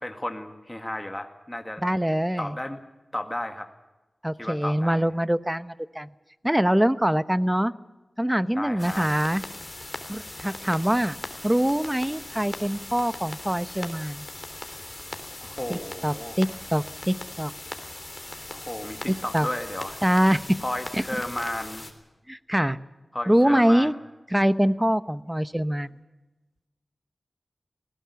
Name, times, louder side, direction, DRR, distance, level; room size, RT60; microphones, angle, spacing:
voice 1, 0.0-1.8 2.4-2.8 3.1-3.7 4.4-5.0 8.6-9.0 15.4-16.4 18.5-20.0 20.6-21.9 23.1-24.0, left 1 dB, 15° left, 5 dB, 2.0 m, -33 dB
voice 2, 1.8-2.5 4.2-6.1 6.4-7.7 8.2-9.4 10.1-11.2 11.4-14.3 15.7-17.5 19.3-19.5 20.0-20.6 20.9-21.0 22.3-22.8 23.3-23.9 24.3-26.0, equal, 10° right, 14 dB, 0.9 m, -24 dB
sound 1, 8.8-21.9, left 2 dB, 35° left, 3.4 m, -39 dB
20.0 x 18.0 x 8.3 m, 1.1 s
cardioid pair, 50°, 0 cm